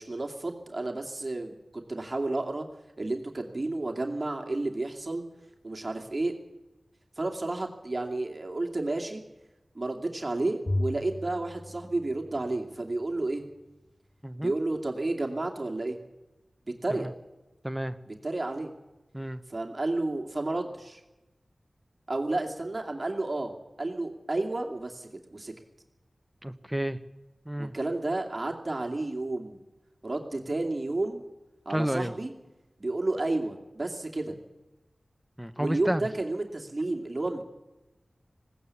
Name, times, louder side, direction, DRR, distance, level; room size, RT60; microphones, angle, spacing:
voice 1, 0.0-2.7 3.0-5.2 5.6-6.3 7.2-9.2 9.7-13.4 14.4-16.0 16.7-17.1 18.1-18.7 19.5-21.0 22.1-25.5 27.6-29.6 30.0-31.2 31.7-32.3 32.8-34.4 35.6-37.4, right 2 dB, 40° right, 2 dB, 2.5 m, -31 dB
Bowed string instrument, 10.7-13.1, left 1 dB, 40° left, 0.7 m, -35 dB
voice 2, 17.6-18.0 19.1-19.4 26.4-27.0 27.5-27.7 31.7-32.2 35.4-36.1, right 1 dB, 5° right, 10 dB, 1.1 m, -31 dB
19.5 x 16.5 x 8.5 m, 1.0 s
wide cardioid pair, 50°, 0 cm